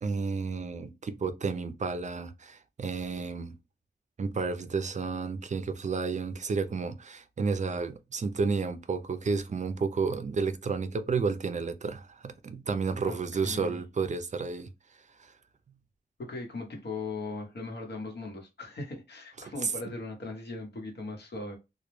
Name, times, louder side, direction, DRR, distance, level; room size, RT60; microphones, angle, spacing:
voice 1, 0.0-3.5 4.2-14.7 15.2-15.3 19.4-19.7, right 4 dB, 45° right, 0.4 m, -31 dB
voice 2, 13.4-13.8 16.2-21.6, left 3 dB, 85° left, 0.9 m, -38 dB
2.2 x 2.1 x 3.0 m
wide cardioid pair, 95°, 17 cm